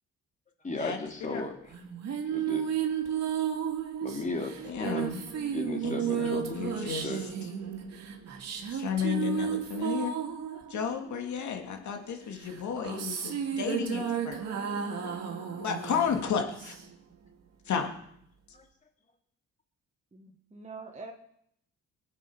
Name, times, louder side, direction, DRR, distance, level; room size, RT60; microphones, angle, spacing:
voice 1, 0.6-1.5 2.3-2.7 4.0-5.2 5.5-6.6 7.0-7.2 18.5-18.6, left 2 dB, 25° left, 2 dB, 2.9 m, -35 dB
sound 1, 1.7-11.6 12.4-17.1, right 8 dB, 60° right, 2.2 m, -33 dB
voice 2, 4.6-5.2 5.8-7.2 8.7-10.1 10.7-14.4 15.6-16.8 17.7-17.9, left 7 dB, 70° left, 4 dB, 2.5 m, -33 dB
voice 3, 20.1-21.1, right 3 dB, 25° right, 2 dB, 1.6 m, -44 dB
21.0 x 8.2 x 5.7 m, 0.72 s
cardioid pair, 90°, 30 cm